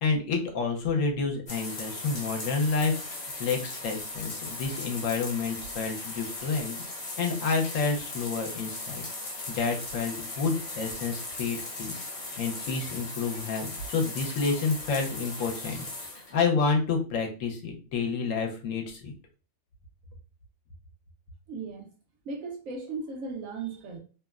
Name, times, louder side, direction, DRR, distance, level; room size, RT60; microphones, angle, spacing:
voice 1, 0.0-6.7 7.2-9.0 9.5-12.0 12.4-19.1, left 4 dB, 70° left, 2 dB, 1.0 m, -29 dB
sound 1, 1.5-16.4, left 2 dB, 40° left, 0.5 m, -38 dB
voice 2, 21.5-21.9 22.2-24.0, right 4 dB, 75° right, 1 dB, 1.1 m, -36 dB
2.9 x 2.1 x 2.3 m, 0.35 s
omnidirectional pair, 1.4 m